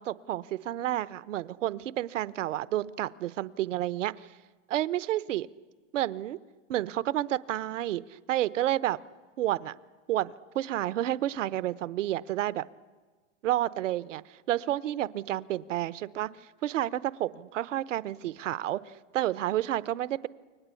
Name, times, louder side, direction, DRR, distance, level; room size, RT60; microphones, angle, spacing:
voice 1, 0.0-4.3 4.7-5.5 5.9-6.4 6.7-9.0 9.4-9.7 10.1-12.6 13.4-16.3 16.6-20.3, right 13 dB, 85° right, 17 dB, 1.0 m, -30 dB
29.5 x 23.5 x 8.4 m, 1.4 s
supercardioid pair, 165°, 37 cm